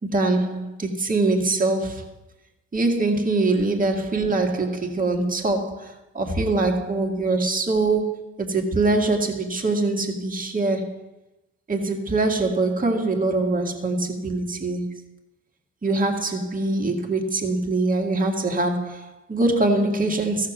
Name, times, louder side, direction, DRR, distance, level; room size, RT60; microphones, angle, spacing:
voice 1, 0.0-2.1 2.7-10.9 11.7-15.0 15.8-20.5, right 2 dB, 30° right, 1.8 m, -23 dB
14.5 x 6.7 x 6.1 m
cardioid pair, 90°, 30 cm